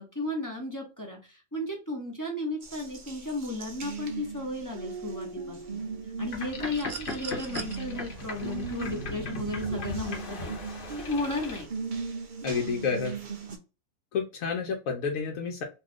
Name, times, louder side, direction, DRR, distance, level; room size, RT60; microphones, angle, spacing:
voice 1, 0.0-5.8 6.2-10.6 11.0-11.7, left 2 dB, 20° left, -1 dB, 0.6 m, -34 dB
Water tap faucet, 2.6-13.6, right 5 dB, 45° right, 0.7 m, -38 dB
Boat Water vehicle, 6.2-11.6, left 2 dB, 45° left, 0.9 m, -38 dB
sound 1, 6.7-7.8 9.3-9.4, right 5 dB, 75° right, 1.0 m, -40 dB
voice 2, 12.4-13.2 14.1-15.6, left 5 dB, 80° left, 1 dB, 1.0 m, -30 dB
2.6 x 2.4 x 3.4 m, 0.30 s
omnidirectional pair, 1.4 m